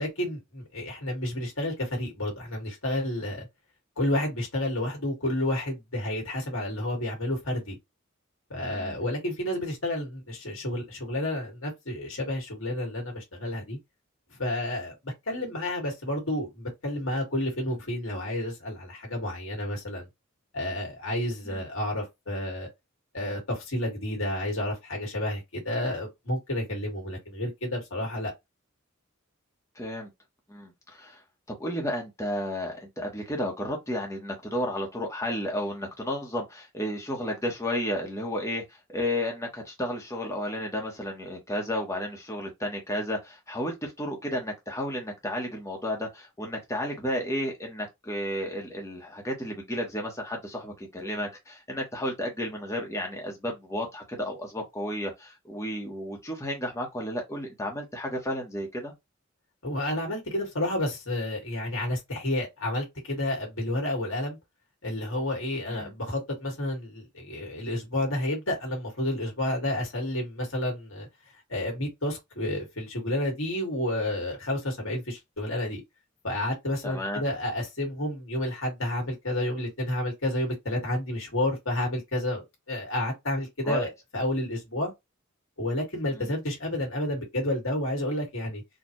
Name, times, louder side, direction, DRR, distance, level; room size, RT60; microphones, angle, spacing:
voice 1, 0.0-3.5 4.0-7.8 8.5-13.8 14.3-20.1 20.5-22.7 23.1-28.3 59.6-64.4 64.8-71.1 71.5-75.8 76.2-84.9 85.6-88.6, left 1 dB, 85° left, 2.1 m, -30 dB
voice 2, 8.6-9.0 21.5-21.6 29.8-30.1 30.5-31.2 31.5-38.6 38.9-58.9 65.7-65.9 76.8-77.2 83.6-83.8, equal, 15° left, 1.1 m, -32 dB
4.3 x 2.4 x 3.1 m
head